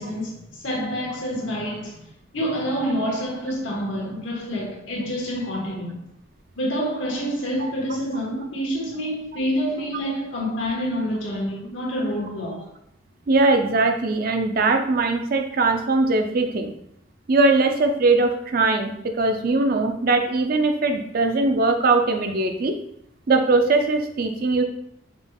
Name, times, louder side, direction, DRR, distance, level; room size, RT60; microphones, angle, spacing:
voice 1, 0.0-2.1 2.3-6.0 6.6-12.6, equal, 70° left, 1.3 m, -27 dB
voice 2, 13.3-16.7 17.3-22.7 23.3-24.6, right 3 dB, 45° right, 0.4 m, -20 dB
5.1 x 3.2 x 2.3 m
head